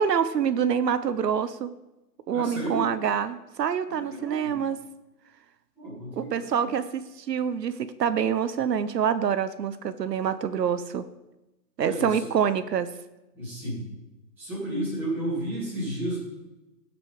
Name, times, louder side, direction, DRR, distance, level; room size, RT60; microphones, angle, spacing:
voice 1, 0.0-1.7 2.3-4.8 6.2-11.0 11.8-12.9, right 7 dB, 75° right, 13 dB, 0.7 m, -26 dB
voice 2, 2.3-2.9 3.9-4.6 5.8-6.7 11.8-12.3 13.3-13.9 14.4-16.2, right 1 dB, 5° right, -11 dB, 2.2 m, -32 dB
12.0 x 5.1 x 4.9 m, 1.0 s
hypercardioid pair, 175°, 50 cm